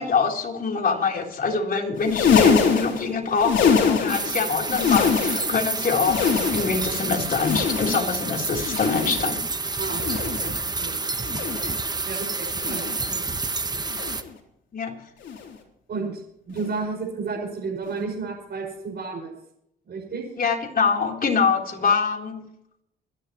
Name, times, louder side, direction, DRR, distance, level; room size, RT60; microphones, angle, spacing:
voice 1, 0.0-9.5 14.7-15.0 20.4-22.5, left 5 dB, 45° left, 1 dB, 3.7 m, -24 dB
sound 1, 1.9-4.4 4.6-5.6 5.9-6.9 7.3-8.2 8.6-9.4 9.9-10.6 11.2-11.8 12.5-13.1 13.9-14.3 15.2-15.5 16.5-16.7 17.9-18.0, left 6 dB, 70° left, 3.8 m, -24 dB
sound 2, 4.1-14.2, right 3 dB, 20° right, 1.1 m, -29 dB
voice 2, 9.8-10.5 10.8-11.0 11.3-11.7 12.1-13.3 15.9-19.3 19.8-20.2, right 4 dB, 55° right, -2 dB, 5.7 m, -32 dB
26.0 x 11.5 x 3.1 m, 0.77 s
cardioid pair, 90°, 20 cm